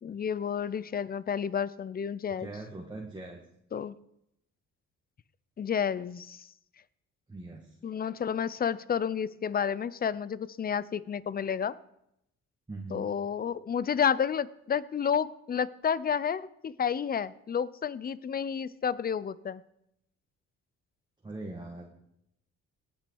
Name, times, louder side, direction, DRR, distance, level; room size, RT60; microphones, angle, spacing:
voice 1, 0.0-2.5 3.7-3.9 5.6-6.5 7.8-11.7 12.9-19.6, left 7 dB, 30° left, 18 dB, 0.5 m, -30 dB
voice 2, 2.4-3.5 7.3-7.8 12.7-13.1 21.2-21.9, right 2 dB, 15° right, 0 dB, 1.6 m, -41 dB
18.0 x 6.1 x 4.6 m, 0.78 s
cardioid pair, 90°, 30 cm